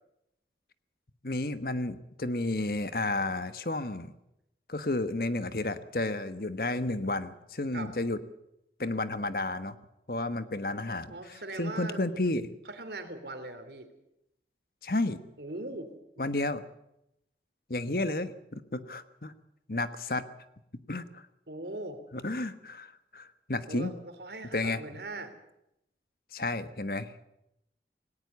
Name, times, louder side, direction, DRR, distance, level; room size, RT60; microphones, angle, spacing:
voice 1, 1.2-4.1 4.7-8.2 8.8-9.8 10.1-12.5 14.8-15.2 16.2-16.6 17.7-19.3 19.7-20.3 20.9-21.2 22.1-23.9 24.5-24.8 26.3-27.1, left 2 dB, 55° left, 12 dB, 1.3 m, -32 dB
voice 2, 11.1-12.0 12.6-13.9 15.4-15.9 16.2-16.3 21.5-22.0 23.7-25.3, right 2 dB, 70° right, 8 dB, 3.1 m, -40 dB
19.0 x 18.5 x 8.1 m, 0.82 s
head